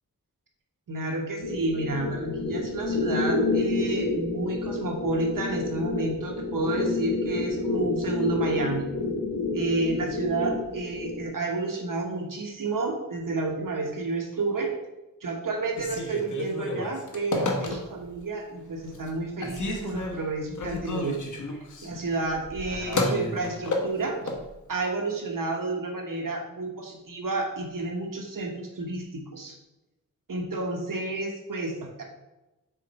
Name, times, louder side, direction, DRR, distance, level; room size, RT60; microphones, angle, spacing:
voice 1, 0.9-8.9 9.5-14.7 15.2-21.2 21.8-24.3 24.7-29.5 30.3-32.0, right 3 dB, 65° right, 2 dB, 1.2 m, -30 dB
sound 1, 1.4-11.3, left 2 dB, 75° left, 2.4 m, -29 dB
Telephone, 15.7-18.2 18.6-19.1 19.4-24.4, left 2 dB, 60° left, 1.2 m, -31 dB
6.4 x 4.5 x 4.1 m, 1.0 s
wide cardioid pair, 110°, 35 cm